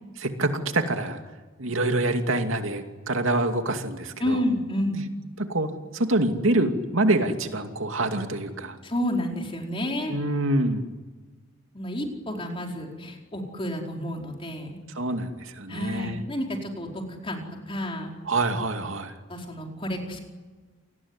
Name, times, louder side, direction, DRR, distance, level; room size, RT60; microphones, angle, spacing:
voice 1, 0.2-1.2 1.6-4.4 5.4-8.8 10.1-10.9 15.0-16.2 18.3-19.1, right 2 dB, 75° right, 5 dB, 2.6 m, -26 dB
voice 2, 4.2-5.0 8.8-10.1 11.7-14.8 15.7-18.1 19.3-20.2, left 1 dB, 25° left, 1 dB, 4.8 m, -30 dB
29.0 x 20.0 x 9.8 m, 1.3 s
head